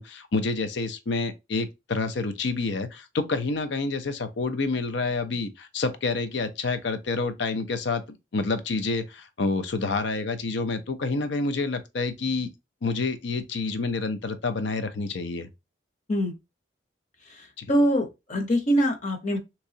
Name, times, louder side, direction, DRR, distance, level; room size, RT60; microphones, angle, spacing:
voice 1, 0.0-8.0 8.3-12.5 12.8-15.5 17.6-17.7, left 3 dB, 65° left, 0.5 m, -28 dB
voice 2, 17.3-19.4, equal, 40° left, 0.8 m, -24 dB
3.5 x 3.0 x 2.7 m
head